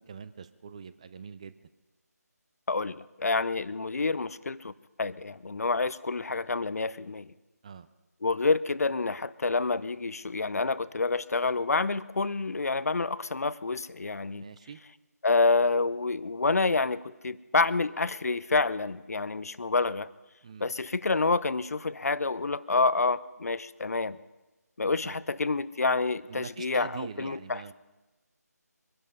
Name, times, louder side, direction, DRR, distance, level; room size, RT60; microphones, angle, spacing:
voice 1, 0.1-1.6 7.6-7.9 14.3-14.8 20.4-20.7 25.0-25.2 26.3-27.7, right 6 dB, 20° right, 13 dB, 0.5 m, -43 dB
voice 2, 2.7-4.7 5.0-7.3 8.2-14.4 15.2-20.1 20.6-24.2 24.8-27.7, left 3 dB, 60° left, 17 dB, 0.6 m, -28 dB
23.5 x 11.0 x 5.5 m, 1.1 s
figure-of-eight pair, 160°, 9 cm